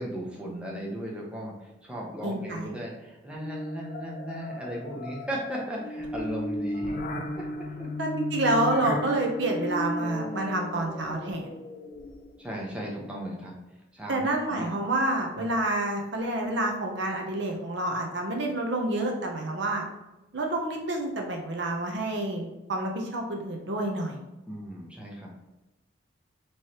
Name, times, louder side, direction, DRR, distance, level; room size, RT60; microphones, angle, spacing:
voice 1, 0.0-7.1 7.3-7.9 12.4-13.6 13.9-14.7 15.4-15.5 24.5-25.3, equal, 5° right, -3 dB, 0.7 m, -36 dB
voice 2, 2.2-2.7 8.0-11.5 14.1-19.8 20.3-24.2, right 2 dB, 60° right, 2 dB, 0.6 m, -28 dB
sound 1, 3.4-12.4, left 1 dB, 45° left, 0.4 m, -35 dB
4.6 x 3.1 x 2.9 m, 1.0 s
head